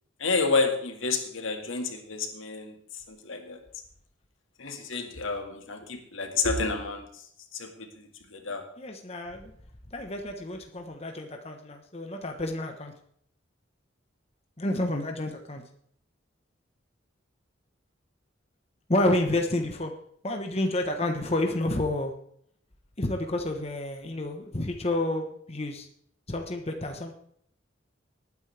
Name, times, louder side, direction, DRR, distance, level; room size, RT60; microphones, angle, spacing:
voice 1, 0.2-2.7 3.1-3.6 4.6-7.0 7.5-8.7, left 4 dB, 90° left, 4 dB, 2.1 m, -30 dB
voice 2, 8.8-9.5 9.9-12.9 14.6-15.6 18.9-19.9 20.2-22.1 23.0-25.9 26.3-27.1, left 1 dB, 30° left, 4 dB, 1.2 m, -29 dB
19.0 x 9.6 x 3.5 m, 0.65 s
head